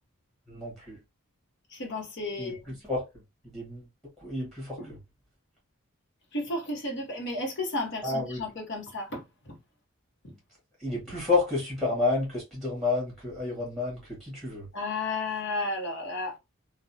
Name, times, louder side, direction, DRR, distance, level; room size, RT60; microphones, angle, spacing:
voice 1, 0.5-1.0 2.4-2.5 2.9-3.0 3.5-3.8 4.2-4.8 8.0-8.4 10.8-14.7, left 3 dB, ahead, 1.1 m, -30 dB
voice 2, 1.7-2.7 4.8-5.0 6.3-9.6 10.2-10.3 14.7-16.4, left 2 dB, 55° left, 0.9 m, -33 dB
2.6 x 2.0 x 2.6 m
head